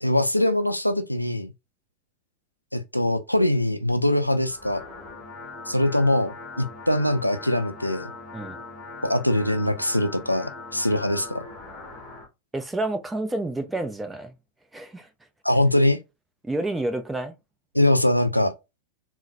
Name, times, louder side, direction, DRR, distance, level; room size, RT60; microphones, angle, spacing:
voice 1, 0.0-1.5 2.7-4.8 5.7-8.1 9.0-11.4 15.4-16.0 17.7-18.5, left 1 dB, 90° left, 0.3 m, -22 dB
sound 1, 4.3-12.3, left 3 dB, 20° left, 1.2 m, -41 dB
voice 2, 12.5-14.3 14.7-15.1 16.4-17.3, right 2 dB, 10° right, 0.6 m, -29 dB
3.9 x 2.1 x 2.6 m
figure-of-eight pair, 90°, 0 cm